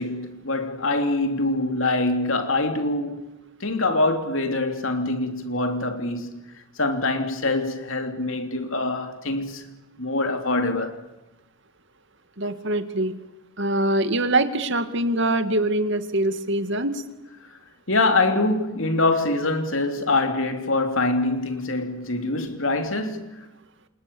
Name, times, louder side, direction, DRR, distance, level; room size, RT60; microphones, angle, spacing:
voice 1, 0.0-3.2 3.6-6.4 6.8-9.7 10.0-11.0 17.9-23.3, left 2 dB, 65° left, 3.2 m, -24 dB
voice 2, 12.4-13.1 13.6-17.0, right 1 dB, 55° right, 2.2 m, -23 dB
29.0 x 27.5 x 7.1 m
head